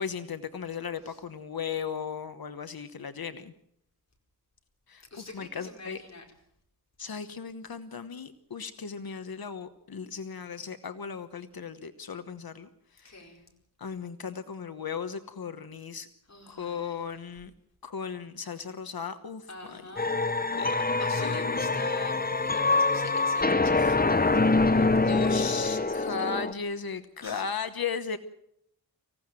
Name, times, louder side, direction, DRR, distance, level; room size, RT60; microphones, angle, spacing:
voice 1, 0.0-3.5 4.9-6.0 7.0-13.1 13.8-16.1 16.5-17.5 17.8-19.8 20.6-20.8 21.2-21.7 23.6-24.0 25.1-28.2, left 6 dB, 70° left, 10 dB, 1.1 m, -36 dB
voice 2, 5.1-6.2 13.0-13.5 16.3-17.0 19.5-20.2 21.0-26.2 27.2-27.5, left 2 dB, 45° left, 1 dB, 4.8 m, -46 dB
sound 1, 20.0-26.5, left 3 dB, 25° left, 1.0 m, -25 dB
25.0 x 16.5 x 7.6 m, 0.74 s
wide cardioid pair, 115°, 37 cm